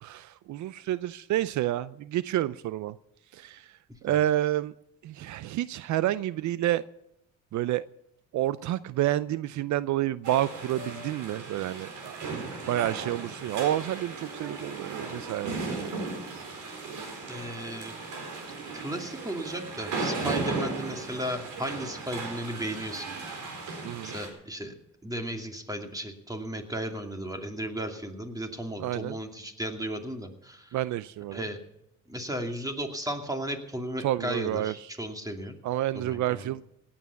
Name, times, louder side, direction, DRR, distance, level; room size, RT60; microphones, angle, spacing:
voice 1, 0.0-2.9 3.3-3.7 4.0-4.7 5.0-6.8 7.5-7.8 8.3-15.9 23.8-24.1 28.8-29.2 30.7-31.4 34.0-34.7 35.6-36.6, right 13 dB, 70° right, 17 dB, 0.5 m, -29 dB
sound 1, 10.2-24.3, right 3 dB, 90° right, 4.3 m, -36 dB
voice 2, 17.3-18.0 18.7-23.1 24.0-24.7 25.0-30.8 31.3-31.6 32.1-35.6 35.9-36.5, right 1 dB, 10° right, 4 dB, 2.6 m, -35 dB
18.0 x 8.7 x 7.0 m, 0.83 s
cardioid pair, 90°, 30 cm